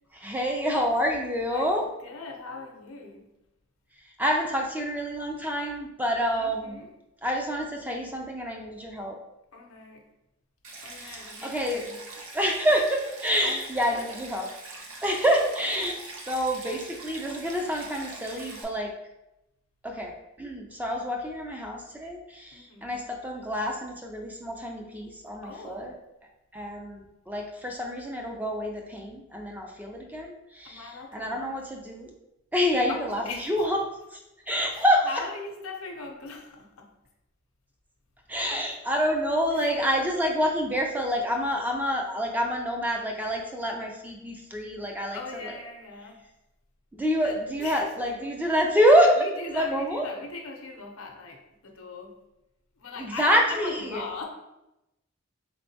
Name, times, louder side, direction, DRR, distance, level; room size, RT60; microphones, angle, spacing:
voice 1, 0.1-1.8 4.2-6.8 7.2-9.2 11.0-11.8 12.3-14.5 15.0-16.0 16.3-18.9 19.8-20.1 20.4-25.9 26.5-30.8 31.1-32.1 32.5-33.8 34.5-35.1 38.3-45.2 46.9-49.3 49.5-50.1 53.0-54.0, equal, 10° right, 1 dB, 0.4 m, -27 dB
voice 2, 1.5-3.3 6.4-6.9 9.5-10.1 10.8-12.1 13.4-14.1 22.5-23.0 25.4-25.9 30.6-31.5 32.9-33.7 34.7-36.9 38.5-39.0 39.5-39.7 45.1-46.2 47.2-48.1 49.2-52.2 52.8-54.3, left 3 dB, 85° left, 2 dB, 0.7 m, -40 dB
Stream, 10.6-18.6, right 2 dB, 80° right, 0.7 m, -43 dB
3.6 x 3.3 x 2.7 m, 0.91 s
head